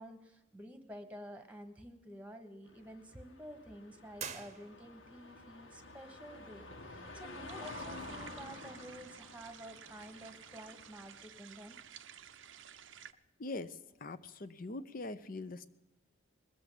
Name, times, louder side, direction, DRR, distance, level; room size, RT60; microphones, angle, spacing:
voice 1, 0.0-11.8, right 1 dB, 5° right, 7 dB, 1.2 m, -51 dB
sound 1, 2.7-11.3, left 2 dB, 80° left, 1.7 m, -50 dB
sound 2, 4.2-5.2, right 6 dB, 35° right, 0.8 m, -45 dB
sound 3, 7.5-13.1, right 9 dB, 70° right, 0.6 m, -54 dB
voice 2, 13.4-15.7, left 2 dB, 45° left, 13 dB, 0.7 m, -42 dB
20.5 x 7.7 x 8.4 m, 1.0 s
head